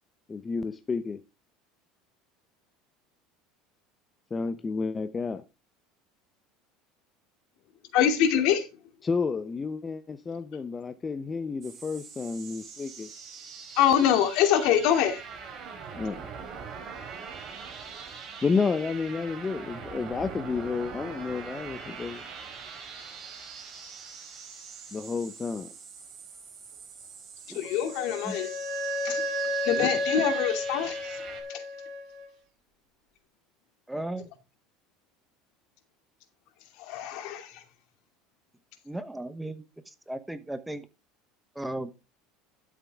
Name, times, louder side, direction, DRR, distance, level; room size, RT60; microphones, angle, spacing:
voice 1, 0.3-1.2 4.3-5.4 9.0-13.1 15.9-16.2 18.4-22.2 24.9-25.7, left 4 dB, 20° left, 0.7 m, -31 dB
voice 2, 7.9-8.7 13.8-15.2 27.5-28.5 29.0-29.2 29.6-31.2 31.5-31.6 36.8-37.5, left 9 dB, 65° left, 2.6 m, -24 dB
sound 1, 11.6-31.4, right 6 dB, 35° right, 4.3 m, -43 dB
Wind instrument woodwind instrument, 27.6-32.3, equal, 60° right, 6.6 m, -32 dB
voice 3, 33.9-34.3 38.8-40.9 41.5-41.9, right 1 dB, 5° right, 1.1 m, -36 dB
12.0 x 7.4 x 3.5 m
supercardioid pair, 130°, 0 cm